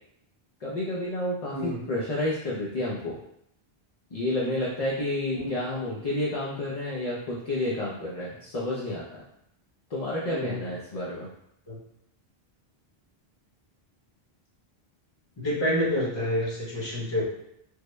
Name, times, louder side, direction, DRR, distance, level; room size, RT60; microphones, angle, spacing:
voice 1, 0.6-3.2 4.1-9.2 9.9-11.3, left 1 dB, 50° left, -5 dB, 0.5 m, -30 dB
voice 2, 10.3-10.7 11.7-11.8 15.4-17.2, left 1 dB, 30° left, -5 dB, 0.9 m, -28 dB
3.5 x 2.1 x 3.1 m, 0.77 s
omnidirectional pair, 1.0 m